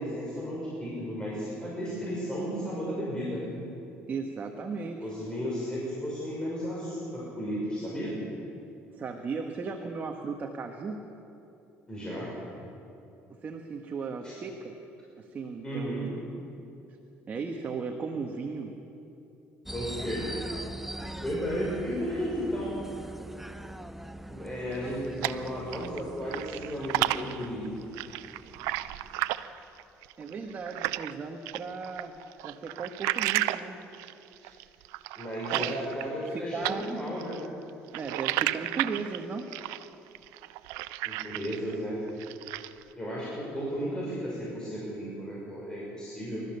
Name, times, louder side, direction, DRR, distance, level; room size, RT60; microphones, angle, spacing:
voice 1, 0.0-3.4 5.0-8.1 11.9-12.3 14.2-14.3 15.6-16.0 19.7-20.2 21.2-22.8 24.3-27.6 34.4-34.5 35.1-37.4 41.0-42.0 43.0-46.4, equal, 15° left, -6 dB, 6.3 m, -34 dB
voice 2, 4.1-5.1 9.0-11.0 13.4-14.7 15.2-16.1 17.3-18.7 30.2-32.2 32.4-33.8 35.5-35.8 36.3-36.9 37.9-39.5, right 5 dB, 35° right, 3 dB, 1.6 m, -36 dB
sound 1, 19.7-29.6, right 1 dB, 5° right, 0.8 m, -42 dB
sound 2, 24.7-26.0 26.3-31.1 31.5-36.4 36.6-41.7 42.1-42.8, right 16 dB, 85° right, 0.6 m, -33 dB
29.0 x 14.0 x 6.9 m, 2.9 s
supercardioid pair, 95°, 5 cm